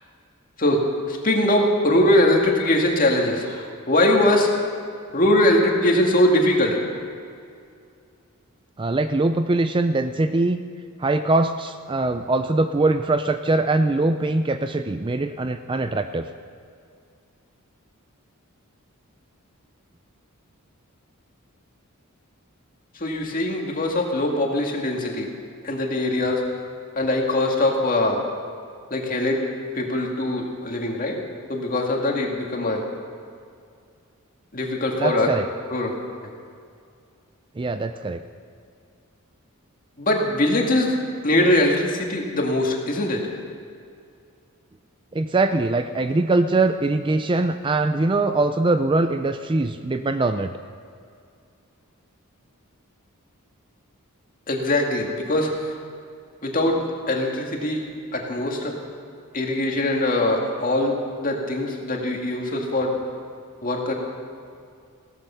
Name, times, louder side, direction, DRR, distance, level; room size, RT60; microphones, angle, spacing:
voice 1, 0.6-4.5 5.1-6.8 23.0-25.3 25.6-26.4 26.9-28.2 28.9-29.5 29.7-31.2 31.5-32.8 34.5-35.3 35.7-35.9 40.0-41.0 41.2-43.3 54.5-55.7 56.4-57.9 58.1-58.7 59.3-62.9 63.6-63.9, left 1 dB, 40° left, 1 dB, 2.1 m, -22 dB
voice 2, 8.8-10.6 11.0-16.3 35.0-35.5 37.6-38.2 45.1-50.5, right 2 dB, 20° right, 9 dB, 0.4 m, -22 dB
17.0 x 13.5 x 5.7 m, 2.4 s
head